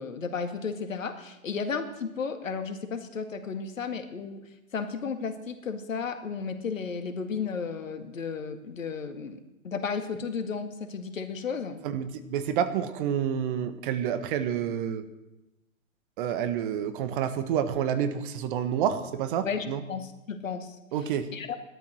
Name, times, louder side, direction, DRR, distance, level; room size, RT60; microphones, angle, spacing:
voice 1, 0.0-4.4 4.7-9.4 9.6-11.8 19.4-20.7 21.3-21.6, left 5 dB, 70° left, 8 dB, 2.1 m, -33 dB
voice 2, 11.8-15.0 16.2-19.8 20.9-21.3, right 9 dB, 40° right, 10 dB, 1.5 m, -29 dB
18.0 x 12.5 x 6.4 m, 0.97 s
figure-of-eight pair, 120°, 41 cm